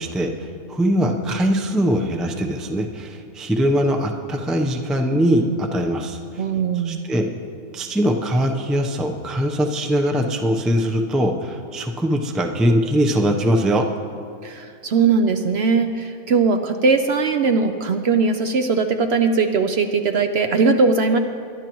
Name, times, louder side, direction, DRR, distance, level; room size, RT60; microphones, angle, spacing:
voice 1, 0.0-6.4 6.8-7.3 7.7-13.9, equal, ahead, 3 dB, 0.4 m, -21 dB
voice 2, 6.4-7.0 14.4-21.2, right 4 dB, 60° right, 7 dB, 0.7 m, -19 dB
22.0 x 11.5 x 3.0 m, 2.3 s
omnidirectional pair, 1.4 m